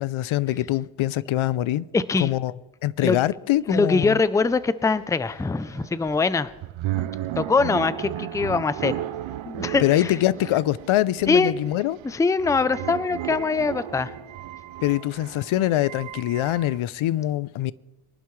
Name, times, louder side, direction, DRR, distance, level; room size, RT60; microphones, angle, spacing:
voice 1, 0.0-1.9 2.2-2.5 2.8-4.2 9.8-12.0 14.8-17.7, left 14 dB, 90° left, 0.6 m, -24 dB
voice 2, 1.9-2.3 3.0-3.2 3.7-6.5 7.4-9.0 9.4-10.2 11.3-11.5 12.0-14.1, left 4 dB, 10° left, 0.4 m, -23 dB
sound 1, 3.7-3.8 4.1-16.8, right 12 dB, 75° right, 0.7 m, -34 dB
23.5 x 12.0 x 3.2 m
wide cardioid pair, 115°, 47 cm